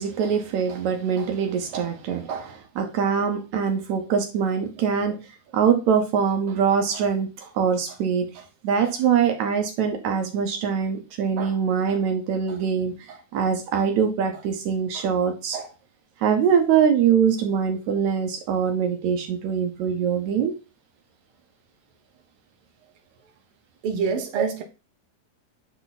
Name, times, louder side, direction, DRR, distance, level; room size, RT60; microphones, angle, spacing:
voice 1, 0.0-5.2 5.5-15.7 16.2-20.5 24.3-24.5, right 7 dB, 70° right, 2.3 m, -23 dB
voice 2, 23.8-24.6, right 5 dB, 55° right, 1.9 m, -26 dB
9.7 x 3.3 x 4.1 m
omnidirectional pair, 3.5 m